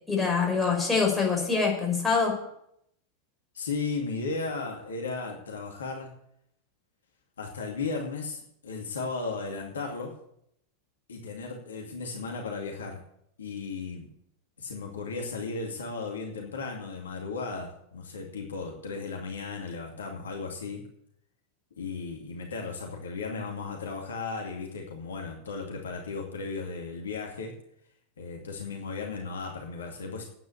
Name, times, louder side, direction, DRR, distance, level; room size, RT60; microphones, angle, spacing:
voice 1, 0.1-2.3, left 5 dB, 5° left, -2 dB, 5.6 m, -25 dB
voice 2, 3.5-6.1 7.4-10.1 11.1-13.0 13.4-14.1 14.6-20.8 21.8-27.6 28.2-30.2, left 4 dB, 70° left, 1 dB, 2.5 m, -35 dB
10.0 x 9.2 x 8.5 m, 0.73 s
figure-of-eight pair, 90°, 0 cm